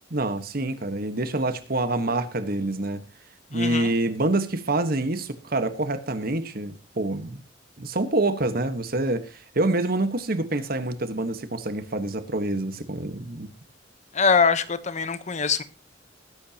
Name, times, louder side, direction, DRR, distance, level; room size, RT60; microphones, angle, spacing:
voice 1, 0.1-3.0 3.5-7.4 7.8-13.5, right 2 dB, 50° right, 1.4 m, -26 dB
voice 2, 3.5-3.9 14.1-15.6, left 5 dB, 40° left, 1.0 m, -23 dB
20.0 x 10.5 x 2.9 m
head